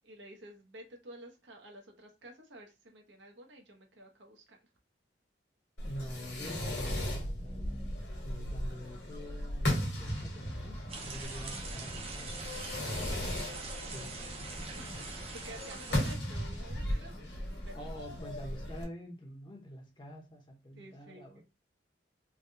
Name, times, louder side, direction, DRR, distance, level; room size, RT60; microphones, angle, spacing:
voice 1, 0.0-4.6 11.2-11.5 13.3-13.6 14.7-17.1 17.5-17.8 20.8-21.4, right 1 dB, 75° right, 0.9 m, -51 dB
Fireworks, 5.8-18.8, equal, 60° left, 1.2 m, -37 dB
voice 2, 5.8-7.8 8.2-12.5 13.8-14.5 17.6-21.4, equal, 25° left, 0.7 m, -47 dB
sound 1, 10.9-16.2, right 3 dB, 30° right, 0.6 m, -43 dB
sound 2, 11.2-16.1, left 5 dB, 80° left, 1.0 m, -52 dB
3.4 x 2.2 x 2.7 m
head